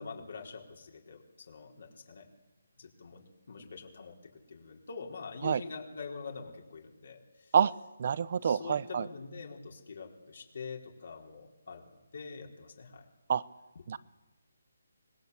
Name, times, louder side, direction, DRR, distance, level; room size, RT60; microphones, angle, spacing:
voice 1, 0.0-2.3 2.8-7.5 8.4-13.1 13.7-13.8, left 5 dB, 55° left, 1 dB, 4.4 m, -45 dB
voice 2, 8.0-9.1 13.3-13.4 13.9-14.0, right 7 dB, 40° right, 19 dB, 0.8 m, -27 dB
25.0 x 21.5 x 8.3 m, 1.1 s
hypercardioid pair, 170°, 0 cm